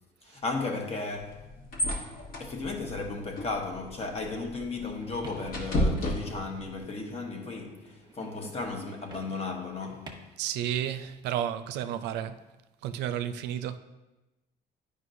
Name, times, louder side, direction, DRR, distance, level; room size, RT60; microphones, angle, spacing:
voice 1, 0.2-1.4 2.4-10.3, left 3 dB, 40° left, 1.0 m, -35 dB
sound 1, 1.1-6.8, equal, 60° left, 1.4 m, -34 dB
sound 2, 4.8-10.1, right 3 dB, 25° right, 1.0 m, -49 dB
voice 2, 10.4-12.3 12.8-13.8, right 10 dB, 85° right, 0.4 m, -32 dB
9.7 x 5.2 x 2.6 m
cardioid pair, 110°, 17 cm